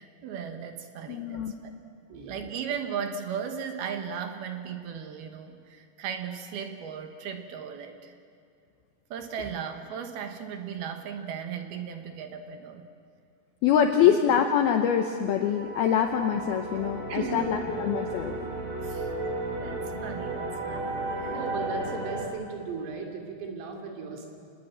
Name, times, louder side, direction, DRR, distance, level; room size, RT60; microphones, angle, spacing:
voice 1, 0.0-1.7 2.3-8.2 9.1-12.9 17.1-17.4 18.8-19.1 19.6-21.4, right 7 dB, 65° right, 6 dB, 2.7 m, -37 dB
voice 2, 1.1-1.5 13.6-18.4, left 8 dB, 80° left, 5 dB, 2.2 m, -24 dB
sound 1, 14.8-22.3, right 2 dB, 50° right, 5.5 m, -34 dB
voice 3, 21.2-24.3, right 4 dB, 85° right, 2 dB, 5.5 m, -36 dB
26.0 x 20.0 x 8.8 m, 2.5 s
omnidirectional pair, 5.7 m